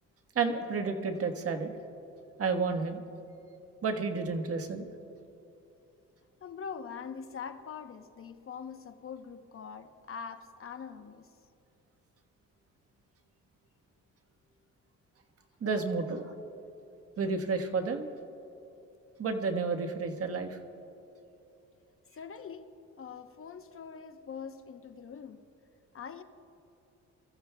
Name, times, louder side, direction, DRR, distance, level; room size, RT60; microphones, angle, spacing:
voice 1, 0.3-1.7 2.4-3.0 3.8-4.9 15.6-16.4 17.2-18.1 19.2-20.6, right 4 dB, 50° right, 1.4 m, -31 dB
voice 2, 6.4-11.3 22.1-25.4 25.9-26.2, left 6 dB, 45° left, 0.9 m, -43 dB
26.0 x 15.0 x 2.3 m
cardioid pair, 90°, 30 cm